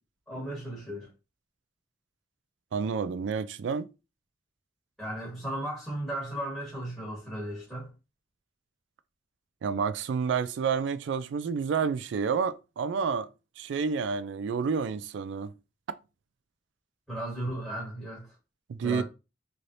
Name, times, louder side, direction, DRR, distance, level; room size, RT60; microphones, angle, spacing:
voice 1, 0.3-1.1 5.0-7.9 17.1-18.3 18.8-19.0, right 1 dB, 5° left, 1.3 m, -35 dB
voice 2, 2.7-3.9 9.6-13.3 13.6-15.5 18.7-19.0, right 6 dB, 75° right, 0.3 m, -29 dB
3.2 x 2.8 x 2.5 m
head